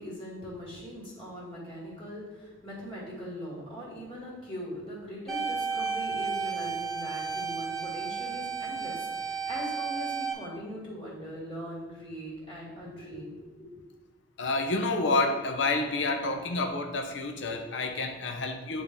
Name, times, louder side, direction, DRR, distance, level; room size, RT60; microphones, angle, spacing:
voice 1, 0.0-13.7, equal, 30° left, -6 dB, 2.1 m, -41 dB
sound 1, 5.3-10.3, right 5 dB, ahead, 1.8 m, -33 dB
voice 2, 14.4-18.8, left 3 dB, 80° left, 4 dB, 0.7 m, -29 dB
9.4 x 3.6 x 3.6 m, 1.3 s
head